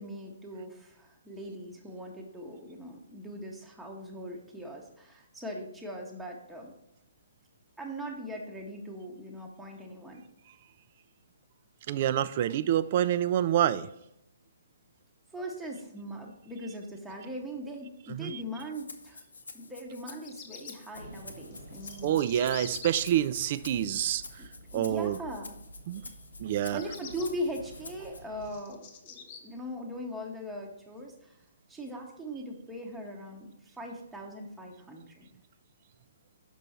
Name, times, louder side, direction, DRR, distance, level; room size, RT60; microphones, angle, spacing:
voice 1, 0.0-6.7 7.8-10.2 15.3-19.2 19.5-22.1 24.4-25.5 26.7-31.3 31.7-35.3, equal, 5° right, -1 dB, 0.8 m, -40 dB
voice 2, 11.9-13.9 18.1-18.4 22.0-24.2 24.7-25.2 25.9-26.0 26.4-26.8, right 11 dB, 40° right, 15 dB, 0.3 m, -27 dB
Rattle (instrument), 18.6-28.2, left 3 dB, 75° left, 0.7 m, -49 dB
Bird vocalization bird call bird song, 19.9-20.7 21.5-23.0 26.5-27.3 27.9-29.4, left 7 dB, 40° left, 1.0 m, -45 dB
sound 1, 20.9-28.6, right 1 dB, 70° right, 1.2 m, -50 dB
6.1 x 5.5 x 4.2 m, 0.84 s
figure-of-eight pair, 130°, 0 cm